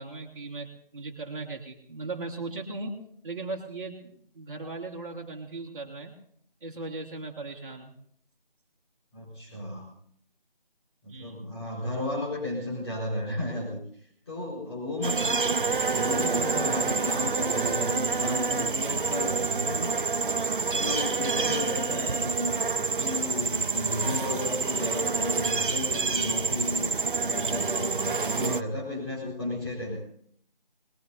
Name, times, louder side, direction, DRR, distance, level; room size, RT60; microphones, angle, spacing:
voice 1, 0.0-3.0 3.2-6.2 6.6-7.9 11.1-11.4 15.2-15.3, right 3 dB, 35° right, -6 dB, 2.3 m, -38 dB
voice 2, 9.1-9.9 11.0-15.6 15.9-22.6 23.0-26.9 27.1-30.0, left 2 dB, 30° left, -5 dB, 4.7 m, -34 dB
sound 1, 15.0-28.6, right 4 dB, 60° right, 0.7 m, -27 dB
24.0 x 20.5 x 2.7 m, 0.65 s
figure-of-eight pair, 165°, 29 cm